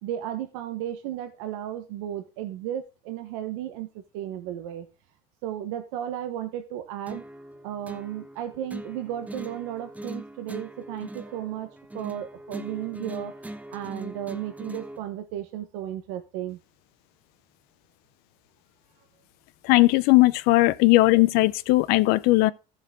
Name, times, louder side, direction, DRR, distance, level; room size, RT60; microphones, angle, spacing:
voice 1, 0.0-4.8 5.4-7.2 7.6-11.7 11.9-13.3 13.7-16.6, right 11 dB, 85° right, 1.2 m, -34 dB
sound 1, 7.1-15.0, right 1 dB, 10° right, 0.8 m, -41 dB
voice 2, 19.6-22.5, left 20 dB, 65° left, 0.6 m, -18 dB
13.0 x 7.2 x 3.7 m
cardioid pair, 135°, 17 cm